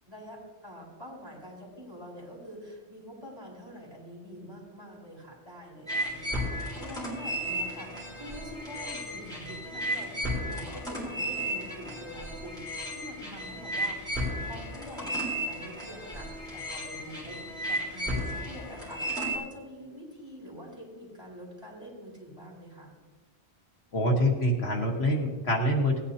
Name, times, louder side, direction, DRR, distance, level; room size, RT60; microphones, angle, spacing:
voice 1, 0.1-15.2 15.4-22.9, equal, 25° right, -4 dB, 4.7 m, -46 dB
sound 1, 5.9-19.4, equal, 5° left, 3.9 m, -34 dB
voice 2, 23.9-26.0, equal, 70° left, 1 dB, 1.7 m, -25 dB
18.5 x 10.0 x 2.8 m, 1.2 s
omnidirectional pair, 1.1 m